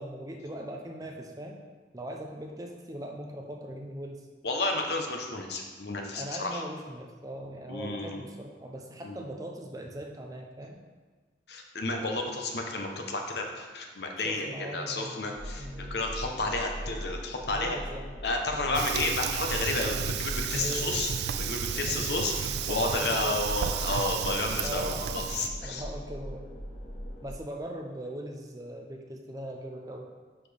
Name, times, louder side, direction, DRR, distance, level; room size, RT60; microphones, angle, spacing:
voice 1, 0.0-1.6 1.9-4.3 6.1-10.8 14.2-16.0 17.5-18.2 20.6-20.9 21.8-22.1 22.5-23.4 24.6-25.3 25.6-26.6 27.2-30.1, right 1 dB, 20° right, 1 dB, 0.6 m, -40 dB
voice 2, 4.4-6.6 7.7-8.2 9.0-9.2 11.5-14.5 14.7-17.8 18.2-21.1 21.4-25.8, left 2 dB, 65° left, 2 dB, 0.9 m, -31 dB
sound 1, 15.4-27.3, equal, 35° left, 0.8 m, -40 dB
Fire, 18.7-25.5, right 8 dB, 65° right, 0.3 m, -33 dB
10.0 x 4.2 x 3.4 m, 1.4 s
head